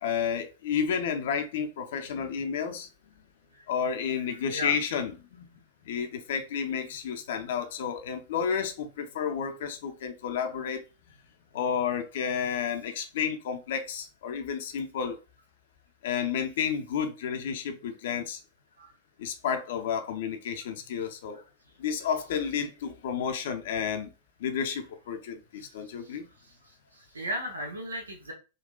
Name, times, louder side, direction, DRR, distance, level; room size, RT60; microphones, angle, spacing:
voice 1, 0.0-2.9 3.7-5.5 5.8-10.8 11.5-15.2 16.0-18.4 19.2-21.4 21.8-24.1 24.4-26.2, left 7 dB, 65° left, 0.5 m, -31 dB
voice 2, 26.9-28.3, equal, 85° right, 0.7 m, -35 dB
3.7 x 2.3 x 2.3 m
figure-of-eight pair, 95°, 0 cm